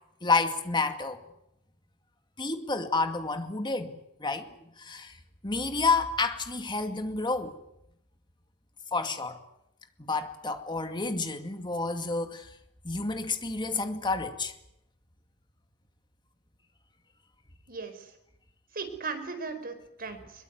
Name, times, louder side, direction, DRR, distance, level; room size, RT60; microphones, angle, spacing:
voice 1, 0.2-1.2 2.4-4.5 4.8-5.2 5.4-7.5 8.9-9.4 10.1-12.5 12.8-14.5, left 3 dB, 20° left, 2.2 m, -29 dB
voice 2, 17.7-18.1 18.7-20.4, right 4 dB, 40° right, 4.7 m, -37 dB
22.5 x 22.5 x 9.4 m
head